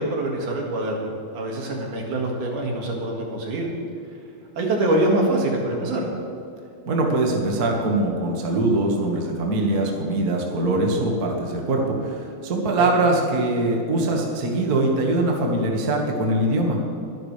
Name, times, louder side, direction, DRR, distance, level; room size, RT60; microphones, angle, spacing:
voice 1, 0.0-3.7 4.6-6.0 12.8-12.9, right 1 dB, 60° right, -1 dB, 3.3 m, -24 dB
voice 2, 6.8-16.8, right 2 dB, 45° right, 0 dB, 1.2 m, -22 dB
23.0 x 11.0 x 3.4 m, 2.5 s
omnidirectional pair, 4.4 m